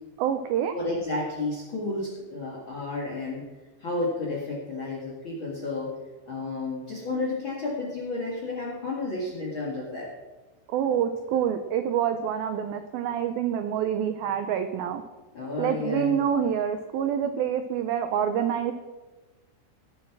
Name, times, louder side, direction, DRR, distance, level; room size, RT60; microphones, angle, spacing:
voice 1, 0.2-0.7 10.7-15.0 15.6-18.7, right 9 dB, 85° right, 8 dB, 2.1 m, -27 dB
voice 2, 0.7-3.5 3.8-5.9 6.3-10.1 15.3-16.3, left 2 dB, 50° left, -2 dB, 1.5 m, -31 dB
19.0 x 7.2 x 6.1 m, 1.2 s
omnidirectional pair, 5.2 m